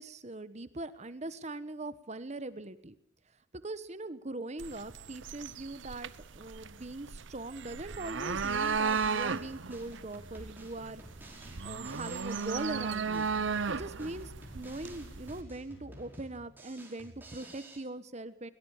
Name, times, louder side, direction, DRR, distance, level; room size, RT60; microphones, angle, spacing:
voice 1, 0.0-2.9 3.6-11.0 11.6-13.3 13.7-18.5, right 2 dB, 35° right, 13 dB, 1.1 m, -41 dB
sound 1, 4.6-15.4, right 5 dB, 75° right, 0.8 m, -35 dB
Drum kit, 8.4-17.8, right 1 dB, 10° right, 5.2 m, -52 dB
sound 2, 10.2-16.0, left 1 dB, 85° left, 5.3 m, -54 dB
21.5 x 19.0 x 7.3 m, 0.63 s
head